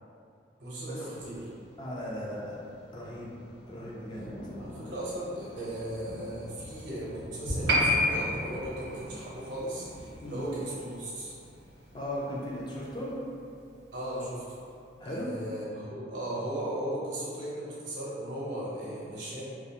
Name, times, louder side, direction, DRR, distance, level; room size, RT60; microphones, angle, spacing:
voice 1, 0.6-1.5 4.6-11.3 13.9-14.6 15.0-19.4, right 1 dB, 75° right, -6 dB, 0.7 m, -37 dB
Thunder, 1.2-13.1, equal, 80° left, 0.7 m, -43 dB
voice 2, 1.8-2.6 2.9-3.4 3.7-4.3 10.2-10.5 11.9-13.2 15.0-15.3, equal, 25° left, -5 dB, 0.4 m, -37 dB
Piano, 7.7-14.6 14.9-15.0, left 1 dB, 60° right, 0.4 m, -33 dB
2.3 x 2.3 x 2.7 m, 2.4 s
head